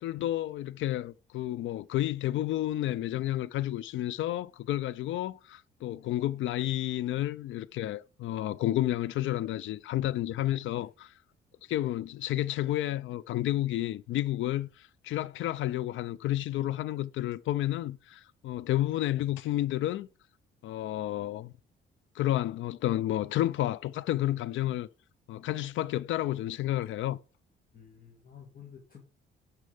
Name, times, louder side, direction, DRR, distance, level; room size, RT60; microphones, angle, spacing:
voice 1, 0.0-11.1 11.7-20.1 20.6-21.5 22.2-24.9 25.3-27.2, left 14 dB, 75° left, 0.5 m, -31 dB
voice 2, 27.7-29.0, left 7 dB, 45° left, 2.0 m, -51 dB
10.0 x 4.5 x 5.0 m
cardioid pair, 90°, 20 cm